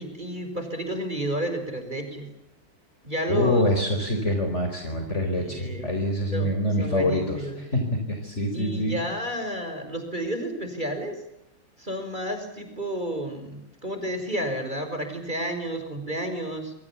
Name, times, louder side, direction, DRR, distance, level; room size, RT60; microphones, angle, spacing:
voice 1, 0.0-2.3 3.0-3.6 5.4-5.9 6.3-6.5 6.8-7.6 8.5-11.1 11.8-16.7, right 1 dB, 25° right, 6 dB, 5.5 m, -31 dB
voice 2, 3.3-8.9, left 1 dB, 35° left, 4 dB, 4.9 m, -25 dB
27.5 x 25.0 x 7.2 m, 0.85 s
omnidirectional pair, 2.0 m